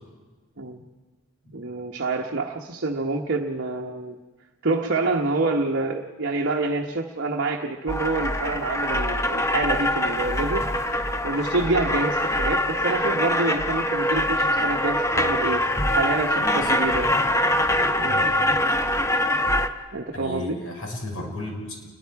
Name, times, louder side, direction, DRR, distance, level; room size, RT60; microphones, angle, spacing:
voice 1, 1.5-4.2 4.6-10.7 11.2-15.6 15.9-17.1 18.0-18.2 19.9-20.6, right 3 dB, 55° right, 1 dB, 1.1 m, -27 dB
sound 1, 7.9-19.7, left 1 dB, 15° left, 0.8 m, -23 dB
voice 2, 16.4-16.7 17.0-17.2 18.0-18.3 20.1-21.9, left 1 dB, 75° left, 0 dB, 5.8 m, -34 dB
29.0 x 21.5 x 4.7 m, 1.4 s
head